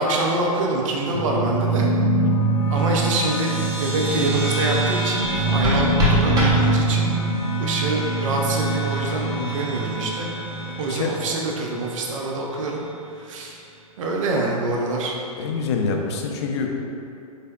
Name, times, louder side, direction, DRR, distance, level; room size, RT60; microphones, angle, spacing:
voice 1, 0.0-1.9 2.7-7.1 7.6-10.4 10.8-12.8 13.2-13.6 14.0-15.1, right 2 dB, 55° right, -1 dB, 0.5 m, -25 dB
sound 1, 1.1-11.9, right 2 dB, 30° left, 0.9 m, -23 dB
sound 2, 5.2-7.2, left 2 dB, 20° right, 0.9 m, -24 dB
voice 2, 15.4-16.7, left 5 dB, 45° left, 2 dB, 0.4 m, -26 dB
4.0 x 3.3 x 2.2 m, 2.6 s
figure-of-eight pair, 110°, 19 cm